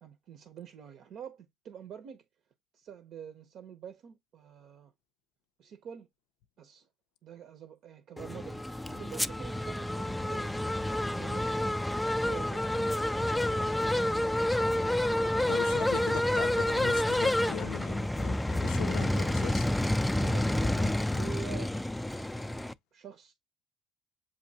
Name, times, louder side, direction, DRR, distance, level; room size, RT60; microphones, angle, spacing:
voice 1, 0.0-2.2 2.7-4.9 5.6-6.1 6.6-6.9 7.2-10.7 11.1-11.8 12.3-12.9 13.2-13.6 13.9-14.6 20.0-21.8 22.2-23.3, right 8 dB, 60° right, 0.7 m, -47 dB
sound 1, 8.2-22.7, left 1 dB, 5° left, 0.3 m, -29 dB
voice 2, 15.5-19.7, left 13 dB, 80° left, 0.4 m, -39 dB
7.4 x 2.6 x 2.7 m
supercardioid pair, 95°, 0 cm